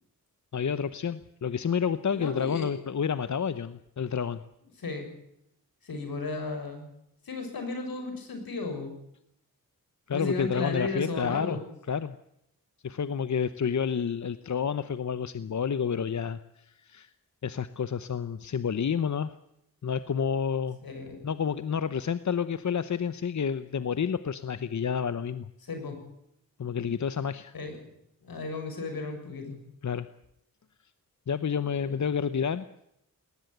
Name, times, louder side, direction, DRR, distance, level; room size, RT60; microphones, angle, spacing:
voice 1, 0.5-4.4 10.1-11.6 11.9-12.1 12.8-16.4 16.7-17.1 17.4-19.3 19.8-20.8 21.2-25.5 26.6-27.5 29.8-30.1 31.3-32.6, left 7 dB, 55° left, 13 dB, 0.9 m, -29 dB
voice 2, 2.1-2.7 4.8-5.1 5.8-6.9 7.2-8.9 10.1-11.6 20.8-21.2 25.7-26.0 27.5-27.8 28.2-29.6 31.8-32.0, left 3 dB, 85° left, 6 dB, 6.7 m, -34 dB
20.0 x 19.0 x 9.3 m, 0.79 s
wide cardioid pair, 90°, 35 cm